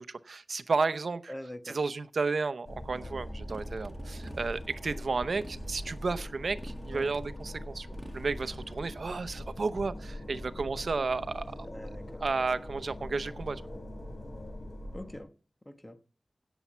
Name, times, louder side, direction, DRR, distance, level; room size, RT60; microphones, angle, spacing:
voice 1, 0.0-1.3 1.7-7.9 8.1-11.5 12.2-13.6, right 4 dB, 80° right, 0.7 m, -32 dB
voice 2, 1.3-1.8 6.9-7.1 11.7-12.2 14.9-15.3 15.6-16.0, left 1 dB, 20° left, 1.2 m, -43 dB
sound 1, 2.6-15.2, left 1 dB, 55° left, 4.7 m, -42 dB
Motorcycle, 2.9-9.7, right 1 dB, 25° right, 1.7 m, -49 dB
16.5 x 7.1 x 4.4 m
wide cardioid pair, 85°, 0 cm